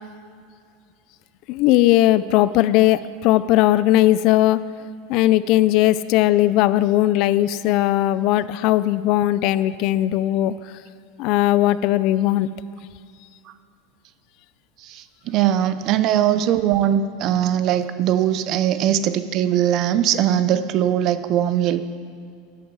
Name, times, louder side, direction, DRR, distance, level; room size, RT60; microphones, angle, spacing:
voice 1, 1.5-4.6 5.1-10.5 11.2-12.5, left 14 dB, 50° left, 16 dB, 0.4 m, -18 dB
voice 2, 14.8-21.8, right 10 dB, 45° right, 12 dB, 0.6 m, -20 dB
13.0 x 11.0 x 4.7 m, 2.3 s
supercardioid pair, 140°, 0 cm